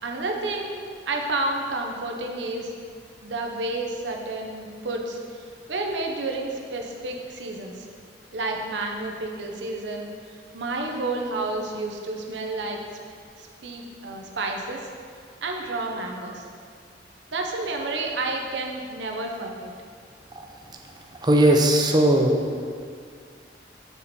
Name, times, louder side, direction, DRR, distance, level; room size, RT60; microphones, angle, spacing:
voice 1, 0.0-2.7 3.2-7.9 8.3-12.8 13.4-14.8 15.4-16.4 17.3-19.7, right 2 dB, 85° right, 2 dB, 0.7 m, -30 dB
voice 2, 21.2-22.4, right 1 dB, 25° right, 2 dB, 0.6 m, -18 dB
7.0 x 4.2 x 4.1 m, 2.1 s
head